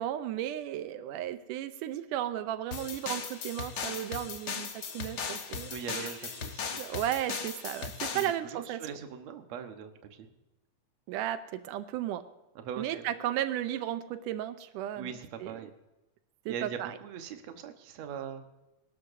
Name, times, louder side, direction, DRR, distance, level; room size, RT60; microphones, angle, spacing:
voice 1, 0.0-5.7 6.0-6.1 6.8-8.8 11.1-12.2 12.8-15.1 15.4-15.5 16.5-17.0, right 12 dB, 90° right, 10 dB, 2.3 m, -34 dB
sound 1, 2.7-8.3, left 6 dB, 80° left, 0.9 m, -38 dB
voice 2, 5.7-6.8 8.1-10.3 12.6-13.1 15.0-15.7 16.5-18.4, right 7 dB, 65° right, 6 dB, 2.2 m, -41 dB
23.5 x 12.5 x 2.7 m, 1.0 s
omnidirectional pair, 3.6 m